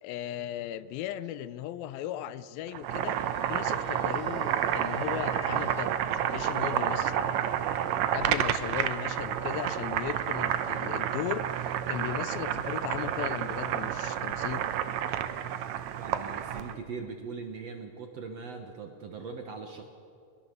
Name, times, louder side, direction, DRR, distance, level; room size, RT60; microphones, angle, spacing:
voice 1, 0.0-3.2 3.5-5.9 6.3-7.2 8.1-14.6, left 12 dB, 80° left, 15 dB, 2.4 m, -37 dB
Boiling, 2.7-16.8, right 10 dB, 80° right, 1.6 m, -30 dB
Wind instrument woodwind instrument, 3.0-6.4, equal, 5° left, 2.9 m, -48 dB
voice 2, 16.0-19.9, right 5 dB, 60° right, 4 dB, 1.8 m, -40 dB
22.0 x 22.0 x 6.8 m, 2.4 s
omnidirectional pair, 4.3 m